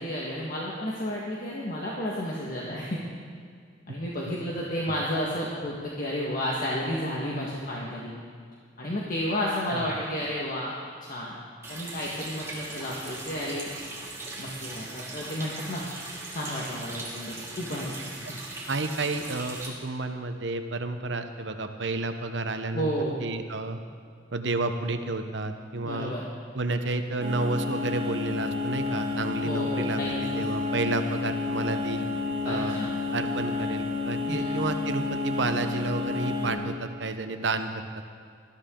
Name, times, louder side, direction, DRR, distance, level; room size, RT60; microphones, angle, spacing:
voice 1, 0.0-3.0 3.9-8.1 8.8-10.7 11.1-11.4 11.7-13.7 14.4-15.8 16.3-17.9 18.3-18.4 22.7-23.1 25.8-26.3 29.4-30.4 32.4-32.9 34.3-34.5, equal, 45° left, -4 dB, 1.7 m, -32 dB
Water tap faucet, 11.6-19.7, right 2 dB, 15° right, 2.6 m, -39 dB
voice 2, 18.7-22.9 23.2-23.8 24.3-26.2 26.5-32.1 32.4-32.8 33.1-37.7, right 3 dB, 70° right, 7 dB, 1.0 m, -31 dB
sound 1, 27.2-36.5, left 4 dB, 35° right, 2.9 m, -30 dB
19.5 x 13.5 x 3.8 m, 2.1 s
head